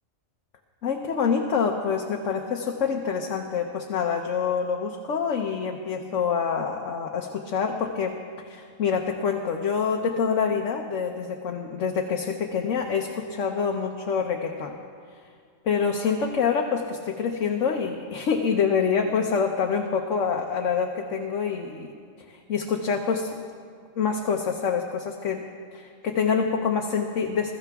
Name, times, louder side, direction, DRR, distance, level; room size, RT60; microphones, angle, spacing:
voice 1, 0.8-8.2 8.4-14.7 15.6-21.9 22.3-23.4 24.0-25.4 25.7-27.5, left 6 dB, 70° left, 2 dB, 1.2 m, -26 dB
21.5 x 14.0 x 3.5 m, 2.1 s
omnidirectional pair, 1.4 m